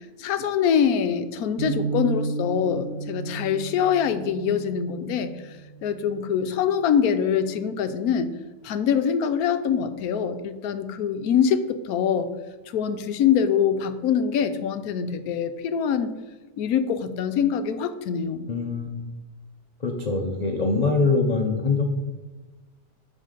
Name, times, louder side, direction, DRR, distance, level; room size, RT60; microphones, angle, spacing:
voice 1, 0.0-5.6 5.8-8.3 8.6-12.3 12.7-16.1 16.6-18.5, left 7 dB, 65° left, 10 dB, 1.0 m, -24 dB
sound 1, 1.6-7.6, right 3 dB, 45° right, 1.9 m, -34 dB
voice 2, 18.5-19.1 19.8-21.8, left 3 dB, 50° left, 2 dB, 0.5 m, -23 dB
9.1 x 4.1 x 6.6 m, 1.2 s
omnidirectional pair, 1.9 m